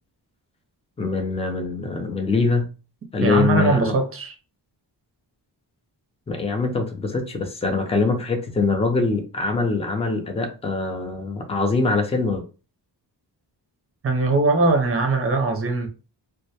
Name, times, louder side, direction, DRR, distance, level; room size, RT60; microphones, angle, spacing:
voice 1, 1.0-2.7 3.1-4.0 6.3-12.4, left 3 dB, 15° left, 0.4 m, -23 dB
voice 2, 3.2-4.3 14.0-15.9, right 3 dB, 35° right, 0.5 m, -21 dB
2.2 x 2.0 x 2.7 m
wide cardioid pair, 135°, 41 cm